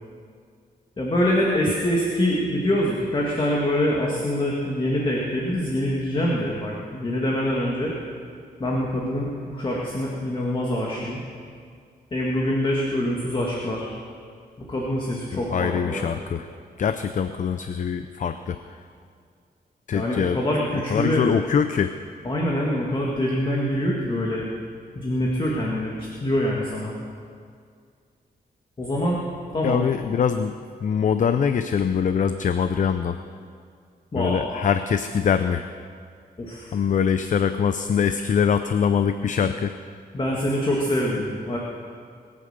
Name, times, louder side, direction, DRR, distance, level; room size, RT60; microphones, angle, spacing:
voice 1, 1.0-7.9 8.6-11.2 12.1-13.9 14.7-16.1 19.9-21.2 22.3-24.5 25.0-26.9 28.8-29.2 29.5-29.8 34.1-34.7 36.4-36.8 40.1-41.6, left 1 dB, 30° left, -3 dB, 1.9 m, -25 dB
voice 2, 15.3-16.5 16.8-18.6 19.9-20.4 20.9-22.0 29.6-33.2 34.2-35.7 36.7-39.8, left 7 dB, 50° left, 10 dB, 0.5 m, -23 dB
21.0 x 8.9 x 6.6 m, 2.2 s
wide cardioid pair, 145°, 16 cm